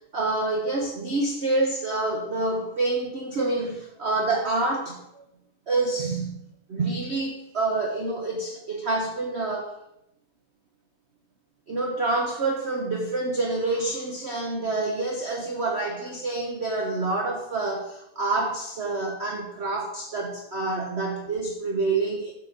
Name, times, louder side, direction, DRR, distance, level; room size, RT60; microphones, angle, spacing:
voice 1, 0.1-5.2 5.7-6.4 6.7-9.8 11.7-22.3, right 2 dB, 45° right, 0 dB, 1.0 m, -27 dB
8.1 x 4.5 x 6.6 m, 0.79 s
omnidirectional pair, 2.2 m